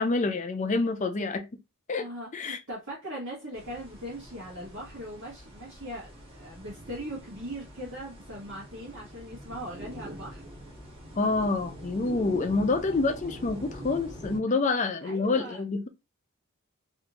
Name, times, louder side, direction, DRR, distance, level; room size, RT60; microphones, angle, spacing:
voice 1, 0.0-1.4 1.9-2.0 2.3-2.6 11.2-15.9, left 3 dB, 35° left, 0.4 m, -27 dB
voice 2, 1.9-10.4 15.0-15.6, equal, 65° right, 1.4 m, -40 dB
sound 1, 3.5-14.4, equal, 25° right, 1.1 m, -44 dB
3.3 x 2.7 x 2.9 m
head